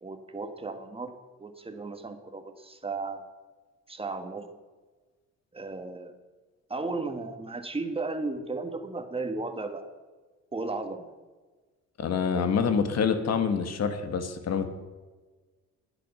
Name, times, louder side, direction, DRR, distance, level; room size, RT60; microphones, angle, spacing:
voice 1, 0.0-1.1 1.4-3.3 3.9-4.5 5.5-6.1 6.7-9.9 10.5-11.1, right 3 dB, 20° right, 6 dB, 1.6 m, -35 dB
voice 2, 12.0-14.7, left 6 dB, 60° left, 9 dB, 1.5 m, -26 dB
10.5 x 10.5 x 5.6 m, 1.3 s
cardioid pair, 90°, 30 cm